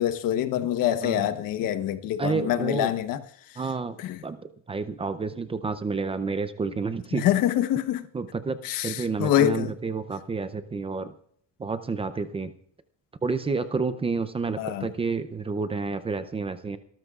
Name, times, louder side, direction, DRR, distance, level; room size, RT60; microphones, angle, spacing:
voice 1, 0.0-3.2 4.0-4.2 7.1-8.1 8.6-9.7 14.6-14.9, left 11 dB, 75° left, 1.1 m, -25 dB
voice 2, 2.2-2.9 3.6-4.0 4.2-7.3 8.1-11.1 11.6-12.5 13.2-16.8, right 4 dB, 15° right, 0.5 m, -30 dB
25.0 x 13.5 x 2.4 m
cardioid pair, 170°, 33 cm